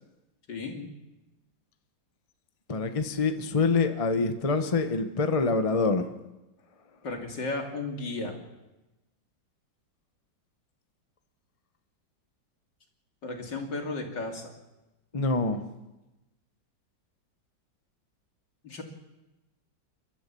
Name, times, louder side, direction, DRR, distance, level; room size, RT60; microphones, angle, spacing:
voice 1, 0.5-0.9 7.0-8.4 13.2-14.5 18.6-18.8, left 3 dB, 70° left, 2 dB, 3.4 m, -34 dB
voice 2, 2.7-6.1 15.1-15.6, left 4 dB, 25° left, 7 dB, 1.0 m, -26 dB
29.5 x 12.5 x 7.0 m, 1.0 s
omnidirectional pair, 2.0 m